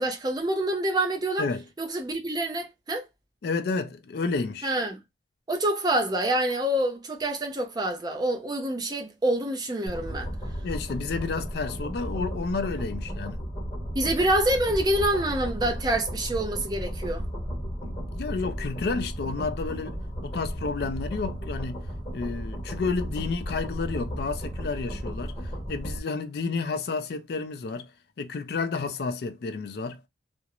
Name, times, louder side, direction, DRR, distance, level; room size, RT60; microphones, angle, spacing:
voice 1, 0.0-1.5 1.8-3.1 4.6-5.0 5.5-10.3 13.9-17.3, right 1 dB, 20° right, 0.4 m, -26 dB
voice 2, 3.4-4.7 10.6-13.4 17.8-21.8 22.1-25.3 25.7-27.9 28.2-30.0, left 4 dB, 55° left, 0.4 m, -31 dB
sound 1, 9.9-26.0, equal, 25° left, 0.8 m, -34 dB
2.4 x 2.0 x 2.9 m
head